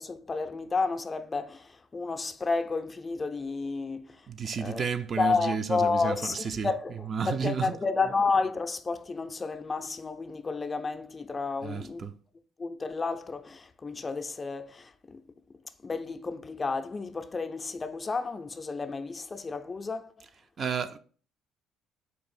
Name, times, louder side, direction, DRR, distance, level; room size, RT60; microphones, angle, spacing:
voice 1, 0.0-4.1 4.6-4.9 5.2-6.9 7.2-12.0 12.6-15.2 15.8-20.1, left 4 dB, 30° left, 0.4 m, -31 dB
voice 2, 4.3-6.7 7.1-7.8 11.6-12.2 20.6-21.0, right 6 dB, 45° right, 0.4 m, -32 dB
4.5 x 2.5 x 4.1 m
supercardioid pair, 75°, 0 cm